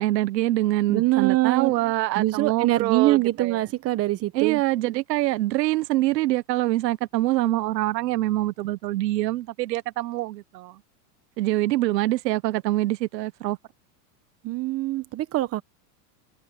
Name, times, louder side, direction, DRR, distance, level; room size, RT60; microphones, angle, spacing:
voice 1, 0.0-3.6 4.3-10.8 11.4-13.6, right 17 dB, 80° right, 1.2 m, -25 dB
voice 2, 0.9-1.7 2.1-4.6 14.4-15.6, right 17 dB, 30° right, 1.2 m, -23 dB
supercardioid pair, 145°, 49 cm